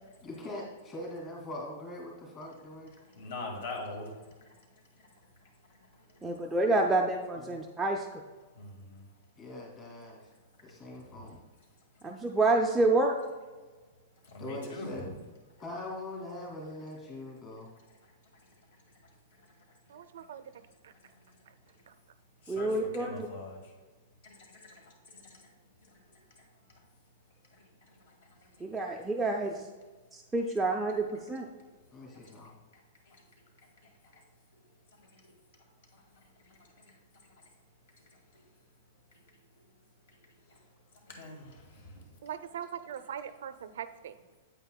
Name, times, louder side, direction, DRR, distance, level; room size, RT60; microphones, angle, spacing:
voice 1, 0.2-2.9 7.5-7.6 9.4-10.2 10.6-11.4 14.4-15.1 15.6-17.7 31.9-32.6, left 1 dB, 20° left, -2 dB, 2.2 m, -42 dB
voice 2, 3.2-4.1 8.6-9.0 14.3-15.1 22.5-23.6 24.2-24.3 24.7-24.8 41.1-41.5 41.9-42.0, left 2 dB, 55° left, 1 dB, 1.9 m, -41 dB
voice 3, 6.2-8.1 12.0-13.2 22.5-23.3 28.6-29.6 30.1-31.5, right 2 dB, 5° right, 0 dB, 0.3 m, -28 dB
voice 4, 19.9-20.4 20.8-20.9 21.9-22.0 42.2-44.1, right 9 dB, 65° right, 11 dB, 0.5 m, -41 dB
8.9 x 8.5 x 2.2 m, 1.3 s
supercardioid pair, 180°, 0 cm